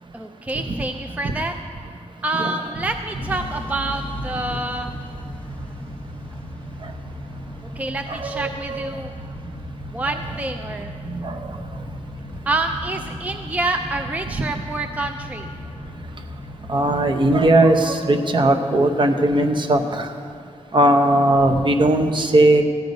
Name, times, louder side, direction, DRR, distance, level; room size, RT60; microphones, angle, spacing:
voice 1, 0.1-1.5 2.2-4.9 7.8-9.1 9.9-10.9 12.5-15.5, right 2 dB, 10° right, 5 dB, 0.4 m, -27 dB
Motor vehicle (road) / Engine starting / Accelerating revving vroom, 3.2-18.2, equal, 10° left, 1.0 m, -36 dB
voice 2, 8.1-8.9 11.1-11.4 16.7-20.1 20.7-22.6, right 1 dB, 40° right, 4 dB, 0.8 m, -18 dB
14.0 x 9.4 x 5.3 m, 2.2 s
wide cardioid pair, 160°, 12 cm